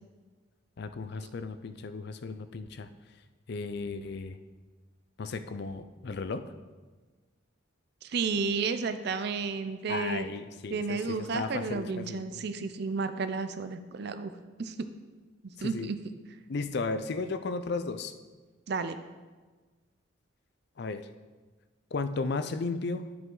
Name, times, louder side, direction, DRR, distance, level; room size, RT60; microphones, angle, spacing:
voice 1, 0.8-2.9 3.5-4.4 5.2-6.5 9.9-12.4 15.6-15.9 16.5-18.1 20.8-21.1 21.9-23.0, left 3 dB, 55° left, 11 dB, 0.4 m, -35 dB
voice 2, 8.0-10.3 10.7-14.3 14.6-14.7 15.6-16.0 18.7-19.0, right 4 dB, 55° right, 10 dB, 0.4 m, -32 dB
11.0 x 5.0 x 3.8 m, 1.3 s
head